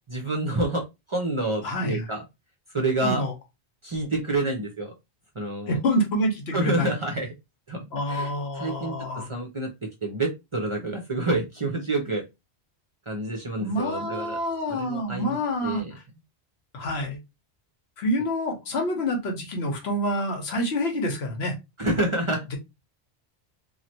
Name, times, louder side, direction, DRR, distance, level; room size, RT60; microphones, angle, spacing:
voice 1, 0.1-0.8 1.1-2.2 2.7-3.2 3.8-4.9 5.4-5.8 6.5-7.3 7.7-7.8 8.1-9.7 10.0-12.3 13.1-14.4 14.7-15.4 15.6-15.9 21.8-22.4, right 2 dB, 35° right, 0.5 m, -28 dB
voice 2, 1.6-2.1 3.0-3.3 5.7-6.9 7.9-9.3 13.6-16.0 16.7-17.2 18.0-21.6 22.5-22.6, equal, 75° left, 1.1 m, -27 dB
3.1 x 2.4 x 2.8 m
omnidirectional pair, 1.1 m